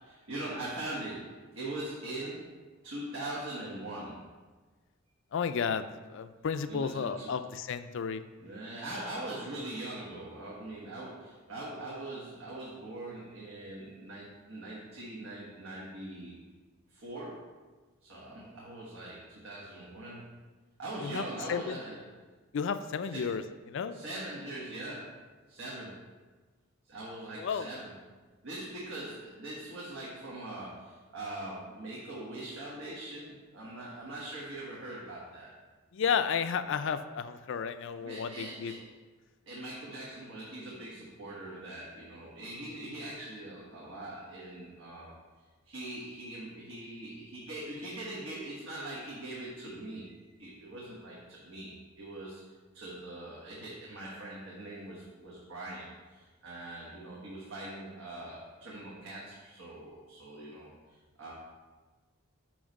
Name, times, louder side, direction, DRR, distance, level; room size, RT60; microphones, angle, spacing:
voice 1, 0.0-4.3 6.7-7.3 8.4-16.3 16.9-17.5 18.0-20.3 20.8-22.0 23.1-23.4 23.9-26.1 26.9-27.9 28.4-35.5 36.8-36.9 38.0-38.9 39.5-45.1 45.6-52.4 52.7-61.3, right 1 dB, 75° right, -6 dB, 1.3 m, -42 dB
voice 2, 5.3-8.2 21.0-21.8 22.5-23.4 23.7-24.0 27.4-27.7 35.9-38.7, left 6 dB, 65° left, 11 dB, 0.4 m, -32 dB
8.7 x 3.2 x 5.2 m, 1.3 s
head